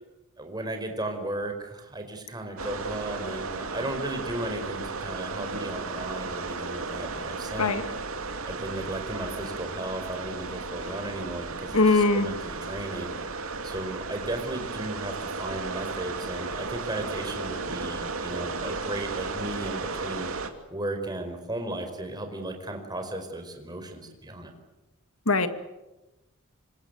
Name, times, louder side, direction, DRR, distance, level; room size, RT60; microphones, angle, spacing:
voice 1, 0.4-7.8 8.4-13.1 13.6-20.3 20.7-24.5, right 1 dB, 20° right, 5 dB, 4.9 m, -35 dB
sound 1, 2.6-20.5, right 3 dB, 70° right, 2.7 m, -34 dB
voice 2, 11.7-12.3 25.3-25.5, left 3 dB, 75° left, 9 dB, 2.2 m, -21 dB
26.5 x 25.5 x 8.1 m, 1.0 s
head